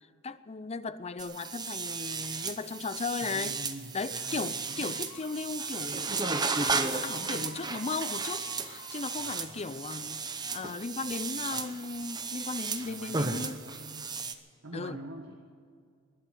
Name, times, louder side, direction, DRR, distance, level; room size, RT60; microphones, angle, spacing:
voice 1, 0.2-3.6 3.9-13.6 14.7-15.0, left 4 dB, 30° left, 14 dB, 0.6 m, -37 dB
sound 1, 1.2-14.3, right 4 dB, 20° right, 0.8 m, -34 dB
voice 2, 3.2-4.9 7.1-7.9 9.2-9.5 11.0-11.1 11.5-11.7 12.9-14.1 14.6-15.4, right 1 dB, 75° right, 3 dB, 1.5 m, -45 dB
Squeak, 4.4-6.4 6.9-9.0, left 3 dB, 55° left, 1.8 m, -51 dB
21.0 x 7.8 x 7.9 m, 2.2 s
head